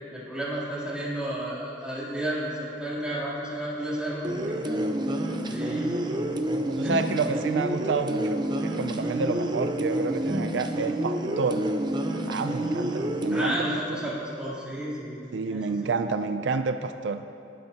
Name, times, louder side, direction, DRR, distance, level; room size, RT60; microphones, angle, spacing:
voice 1, 0.1-4.2 4.6-4.8 5.4-5.9 6.8-7.0 13.3-15.2 15.5-15.9, right 1 dB, 5° right, -9 dB, 3.2 m, -32 dB
sound 1, 4.2-13.5, right 1 dB, 25° right, 0.7 m, -28 dB
voice 2, 6.7-11.7 12.3-14.0 15.3-17.2, right 4 dB, 80° right, 9 dB, 0.4 m, -29 dB
18.0 x 12.0 x 2.9 m, 2.7 s
head